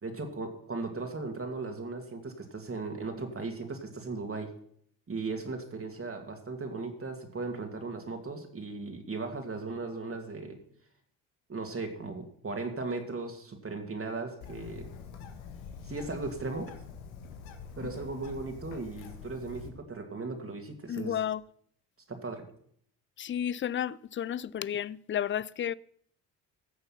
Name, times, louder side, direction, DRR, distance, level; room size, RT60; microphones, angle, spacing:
voice 1, 0.0-4.5 5.1-10.6 11.5-14.9 15.9-16.7 17.8-21.2 22.1-22.4, right 3 dB, 30° right, 2.5 m, -37 dB
Bird, 14.4-19.7, left 6 dB, 85° left, 1.7 m, -45 dB
voice 2, 20.9-21.4 23.2-25.7, left 10 dB, 30° left, 0.4 m, -32 dB
15.5 x 6.7 x 5.9 m
hypercardioid pair, 60°, 45 cm